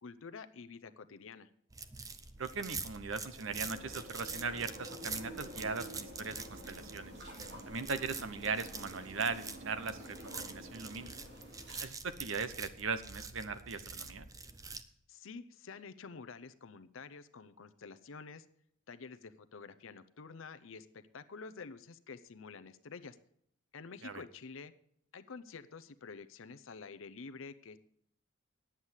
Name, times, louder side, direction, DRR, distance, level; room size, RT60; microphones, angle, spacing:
voice 1, 0.0-1.5 15.1-18.5 18.9-23.2 23.7-24.7 25.1-27.8, left 4 dB, 75° left, 12 dB, 0.6 m, -49 dB
sound 1, 1.7-14.8, right 4 dB, 15° right, 0.5 m, -46 dB
voice 2, 2.4-7.1 7.7-11.1 11.8-14.3 24.0-24.2, right 4 dB, 70° right, 12 dB, 0.8 m, -39 dB
sound 2, 3.3-11.8, equal, 55° right, 2.8 m, -50 dB
10.0 x 8.1 x 7.3 m, 0.69 s
head